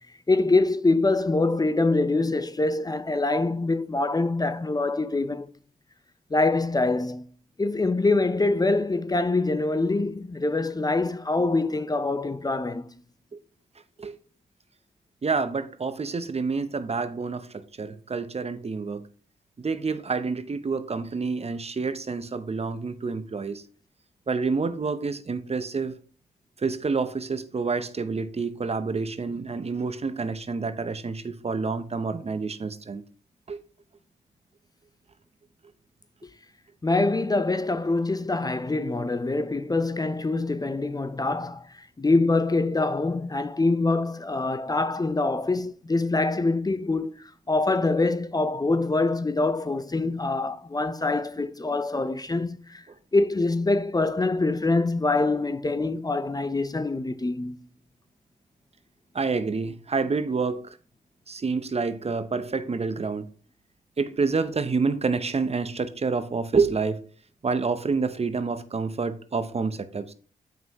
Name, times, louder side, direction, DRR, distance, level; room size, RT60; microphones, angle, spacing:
voice 1, 0.3-5.5 6.3-7.2 7.6-12.9 36.8-52.8 53.1-57.6, left 3 dB, 25° left, 0.6 m, -24 dB
voice 2, 15.2-19.0 19.6-23.6 24.3-25.9 26.6-33.0 33.5-33.6 59.1-60.8 61.3-63.3 64.0-67.0 67.4-70.1, right 4 dB, 40° right, 0.8 m, -28 dB
7.4 x 5.6 x 3.0 m
supercardioid pair, 40°, 17 cm